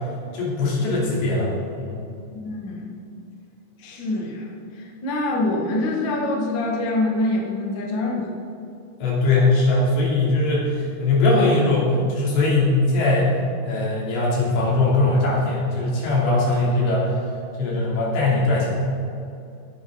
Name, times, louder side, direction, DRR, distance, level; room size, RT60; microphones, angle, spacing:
voice 1, 0.3-1.5 1.8-2.0 9.0-13.3 13.7-17.1 17.6-18.7, left 2 dB, 80° left, -5 dB, 5.2 m, -20 dB
voice 2, 2.3-2.9 3.8-8.3, left 2 dB, 45° left, -2 dB, 1.5 m, -25 dB
17.5 x 9.6 x 3.9 m, 2.5 s
omnidirectional pair, 4.9 m